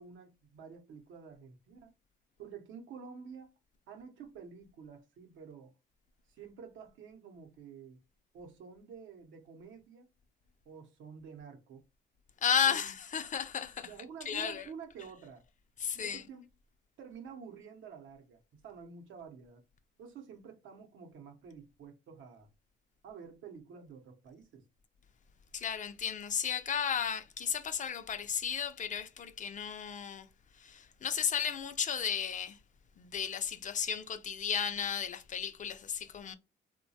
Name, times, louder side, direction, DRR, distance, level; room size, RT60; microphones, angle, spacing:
voice 1, 0.0-1.9 2.4-3.5 3.9-5.7 6.3-8.0 8.3-10.0 10.7-11.8 12.6-12.9 13.8-15.4 15.9-16.5 17.0-19.6 20.0-22.5 23.0-24.6, right 6 dB, 80° right, 0.7 m, -49 dB
voice 2, 12.4-13.9 14.3-14.7 15.8-16.2 25.5-30.3 30.6-32.6 33.0-36.3, left 7 dB, 40° left, 0.4 m, -34 dB
3.0 x 2.2 x 2.7 m
cardioid pair, 90°, 20 cm